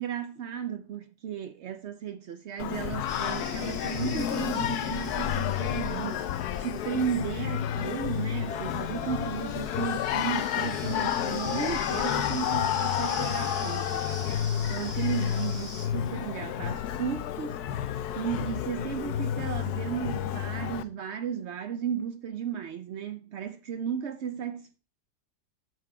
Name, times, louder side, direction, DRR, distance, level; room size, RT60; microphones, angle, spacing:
voice 1, 0.0-6.3 6.6-14.0 14.7-24.8, right 8 dB, 80° right, 0.6 m, -34 dB
Singing, 2.6-20.8, left 10 dB, 70° left, 1.0 m, -30 dB
sound 1, 3.1-15.9, left 1 dB, 15° left, 5.0 m, -43 dB
12.5 x 4.5 x 4.7 m
omnidirectional pair, 1.9 m